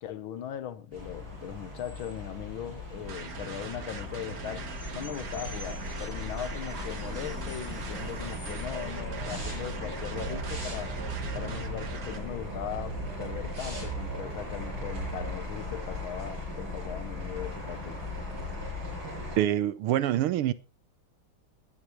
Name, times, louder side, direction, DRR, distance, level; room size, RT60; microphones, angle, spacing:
voice 1, 0.0-11.0 11.3-18.0, left 10 dB, 70° left, 1.7 m, -39 dB
sound 1, 0.9-19.4, left 2 dB, 65° right, 6.9 m, -38 dB
sound 2, 3.0-12.2, right 6 dB, 45° right, 1.7 m, -42 dB
sound 3, 8.0-15.3, right 7 dB, 30° right, 1.7 m, -40 dB
voice 2, 19.4-20.5, right 12 dB, 90° right, 1.7 m, -25 dB
20.0 x 10.0 x 3.1 m
omnidirectional pair, 2.4 m